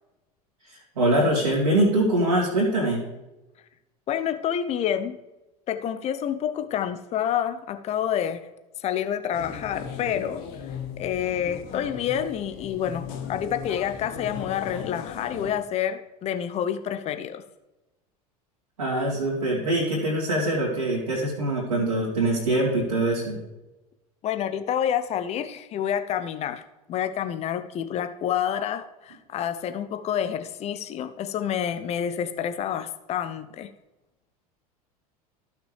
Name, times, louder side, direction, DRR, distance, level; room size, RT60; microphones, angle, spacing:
voice 1, 0.7-3.0 18.8-23.4, right 1 dB, 75° right, -6 dB, 2.5 m, -23 dB
voice 2, 4.1-5.2 5.7-8.4 8.8-10.4 11.0-17.4 24.2-26.6 26.9-33.7, left 9 dB, 35° left, 10 dB, 0.7 m, -28 dB
sound 1, 9.3-15.5, left 6 dB, 50° left, 1.3 m, -37 dB
14.5 x 6.0 x 3.3 m, 1.0 s
figure-of-eight pair, 75°, 20 cm